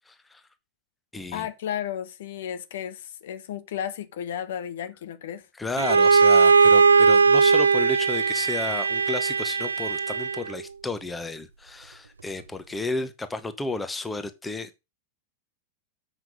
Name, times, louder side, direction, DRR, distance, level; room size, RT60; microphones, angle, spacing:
voice 1, 0.1-0.4 1.1-1.5 5.6-14.8, left 3 dB, 10° left, 1.1 m, -32 dB
voice 2, 1.3-5.4, left 9 dB, 60° left, 1.1 m, -33 dB
Bowed string instrument, 5.8-10.6, right 5 dB, 75° right, 0.4 m, -19 dB
7.6 x 5.9 x 5.1 m
figure-of-eight pair, 90°, 0 cm